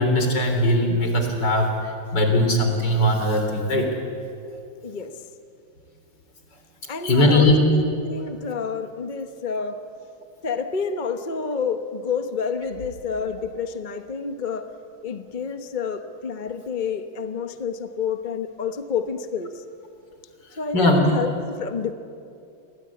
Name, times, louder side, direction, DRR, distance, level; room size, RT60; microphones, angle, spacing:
voice 1, 0.0-1.8 2.1-3.9 7.0-7.6 20.7-21.1, left 1 dB, 55° left, 4 dB, 4.2 m, -19 dB
voice 2, 6.9-9.9 10.4-14.7 15.0-19.5 20.6-21.9, left 5 dB, 35° left, 8 dB, 0.8 m, -29 dB
29.5 x 21.5 x 8.6 m, 2.5 s
omnidirectional pair, 2.3 m